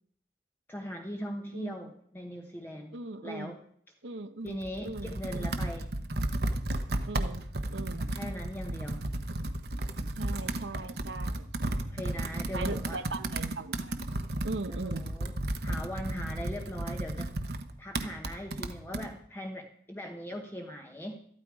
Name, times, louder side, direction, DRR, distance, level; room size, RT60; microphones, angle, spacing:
voice 1, 0.7-3.0 3.2-3.6 4.4-5.9 8.0-9.0 11.9-13.0 14.7-17.3 17.8-21.2, equal, 10° left, 2 dB, 1.0 m, -40 dB
voice 2, 2.9-3.6 4.0-5.5 7.0-8.1 10.2-11.9 12.5-14.1 14.4-15.1, right 3 dB, 85° right, 10 dB, 1.0 m, -40 dB
Computer keyboard, 4.5-19.1, right 1 dB, 60° right, 1.1 m, -34 dB
13.5 x 13.0 x 4.8 m, 0.66 s
head